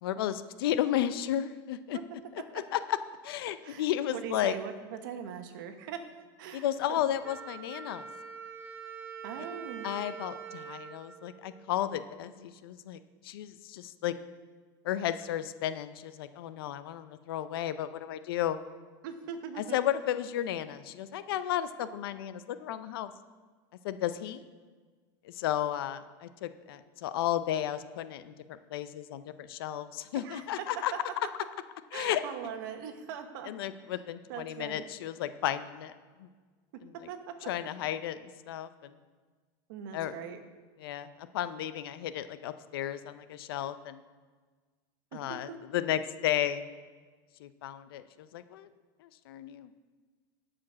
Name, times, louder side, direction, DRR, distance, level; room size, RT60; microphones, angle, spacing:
voice 1, 0.0-2.0 2.5-3.0 3.2-4.5 6.5-8.1 9.8-14.2 14.8-18.6 19.6-23.1 23.8-24.4 25.2-30.9 31.9-32.2 33.4-36.3 36.8-37.1 37.4-38.9 39.9-40.1 40.8-44.0 45.1-46.6 47.4-48.7 49.0-49.7, left 11 dB, 85° left, 12 dB, 0.6 m, -33 dB
voice 2, 4.1-6.0 6.4-7.0 9.2-9.9 19.0-19.8 30.2-30.4 31.9-33.5 34.3-34.9 37.1-37.2 39.7-40.4 45.1-45.6, right 8 dB, 65° right, 7 dB, 1.1 m, -41 dB
Wind instrument woodwind instrument, 7.2-12.0, right 6 dB, 15° right, 0.7 m, -45 dB
11.5 x 5.1 x 6.2 m, 1.4 s
supercardioid pair, 160°, 12 cm